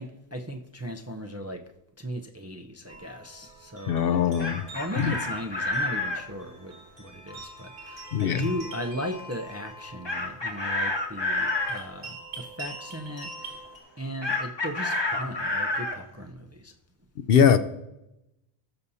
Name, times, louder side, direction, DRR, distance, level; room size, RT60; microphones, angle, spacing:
voice 1, 0.0-1.6 2.0-4.2 4.7-13.6 14.0-16.7, equal, 20° right, 4 dB, 0.5 m, -37 dB
sound 1, 2.9-13.8, right 2 dB, 65° right, 3.9 m, -44 dB
voice 2, 3.9-4.6 5.0-5.1 8.1-8.4 17.3-17.6, left 7 dB, 65° left, 12 dB, 0.7 m, -21 dB
Chicken rooster, 4.1-6.2 10.1-11.8 14.2-16.0, left 2 dB, 25° left, 1.1 m, -29 dB
19.5 x 6.9 x 2.7 m, 0.89 s
omnidirectional pair, 1.1 m